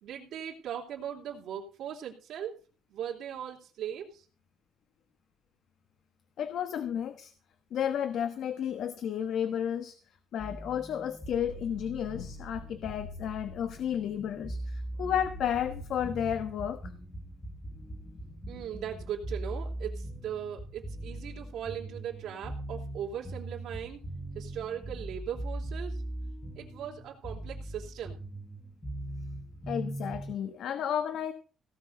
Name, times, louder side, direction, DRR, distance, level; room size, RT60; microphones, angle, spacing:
voice 1, 0.0-2.5 2.9-4.2 18.5-24.0 24.3-26.0 26.5-28.2, right 9 dB, 70° right, -2 dB, 3.2 m, -39 dB
voice 2, 6.4-7.3 7.7-10.0 10.3-16.9 29.7-31.3, left 9 dB, 60° left, 10 dB, 1.2 m, -32 dB
sound 1, 10.4-30.3, right 1 dB, 15° left, 1.7 m, -40 dB
17.5 x 6.0 x 8.0 m, 0.36 s
cardioid pair, 175°, 0 cm